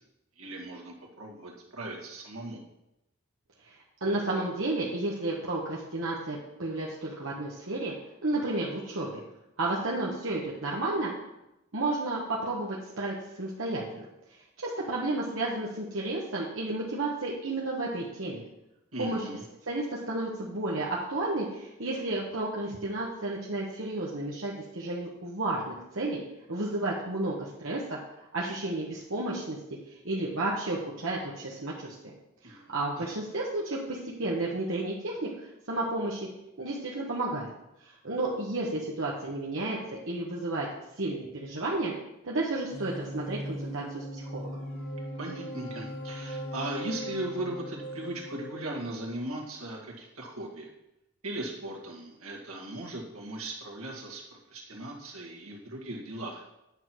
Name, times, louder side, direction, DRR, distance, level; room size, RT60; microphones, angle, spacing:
voice 1, 0.4-2.6 18.9-19.4 32.4-33.1 45.2-50.7 51.2-56.4, right 1 dB, 80° right, -1 dB, 2.0 m, -38 dB
voice 2, 4.0-7.9 8.2-9.2 9.6-11.1 11.7-14.0 14.6-18.4 19.0-19.2 19.7-26.2 26.5-27.8 28.3-29.6 30.0-32.1 32.4-36.3 36.6-37.5 37.8-39.8 40.1-40.7 41.0-41.9 42.2-44.5, right 2 dB, 60° right, -5 dB, 1.2 m, -32 dB
sound 1, 42.7-49.2, equal, 40° left, 2.6 m, -39 dB
8.9 x 5.9 x 4.7 m, 0.89 s
head